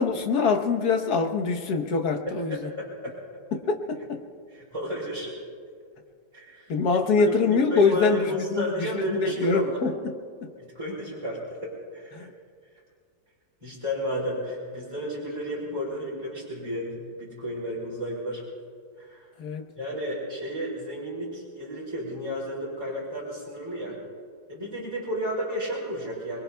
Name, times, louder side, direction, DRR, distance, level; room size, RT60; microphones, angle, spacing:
voice 1, 0.0-2.7 3.7-4.2 6.7-8.3 8.6-10.1 10.4-10.5 12.1-12.3 19.4-19.6, left 4 dB, 60° left, 5 dB, 1.6 m, -24 dB
voice 2, 2.3-3.2 4.5-5.3 6.3-6.7 7.2-9.8 10.6-12.3 13.6-18.4 19.0-19.3 19.8-24.0 24.5-26.4, equal, 15° right, -8 dB, 3.4 m, -32 dB
24.5 x 23.0 x 2.3 m, 2.1 s
omnidirectional pair, 2.0 m